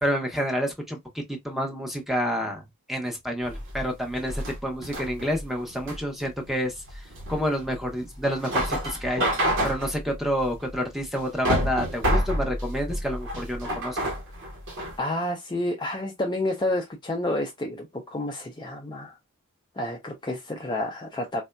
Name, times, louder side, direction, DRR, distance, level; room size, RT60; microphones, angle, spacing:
voice 1, 0.0-2.6 2.9-9.2 9.6-14.1, equal, ahead, 0.9 m, -29 dB
sound 1, 3.4-15.0, equal, 60° right, 1.4 m, -29 dB
voice 2, 15.0-19.2 19.8-21.4, left 1 dB, 20° left, 0.5 m, -29 dB
4.2 x 2.6 x 2.2 m
head